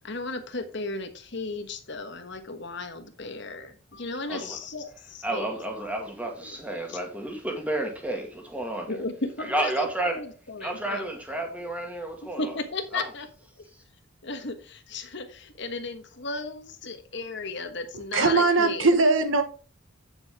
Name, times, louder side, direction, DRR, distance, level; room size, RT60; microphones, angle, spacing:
voice 1, 0.0-5.5 6.2-6.5 6.9-7.0 8.9-11.1 12.4-13.3 14.2-18.9, left 3 dB, 55° left, 1.3 m, -35 dB
voice 2, 5.2-9.0 9.4-10.2 10.6-12.6 12.9-13.1, right 1 dB, 5° right, 2.0 m, -31 dB
voice 3, 18.1-19.4, right 3 dB, 70° right, 1.3 m, -20 dB
8.7 x 7.4 x 3.6 m
head